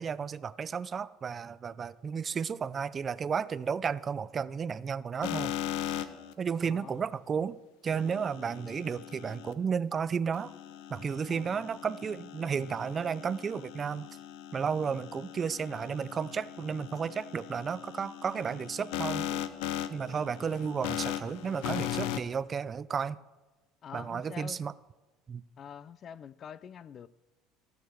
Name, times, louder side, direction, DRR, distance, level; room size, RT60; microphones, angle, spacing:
voice 1, 0.0-5.5 5.8-6.1 6.4-7.6 7.8-10.5 10.9-14.1 14.5-19.4 19.9-23.2 23.9-24.7 25.3-25.4, right 6 dB, 30° right, 0.4 m, -33 dB
sound 1, 5.2-6.3 7.9-9.5 10.3-22.2, left 12 dB, 80° left, 0.6 m, -39 dB
voice 2, 6.6-7.1 11.3-11.7 23.8-24.6 25.6-27.1, left 8 dB, 40° left, 0.4 m, -46 dB
15.5 x 6.6 x 4.6 m
cardioid pair, 125°, 0 cm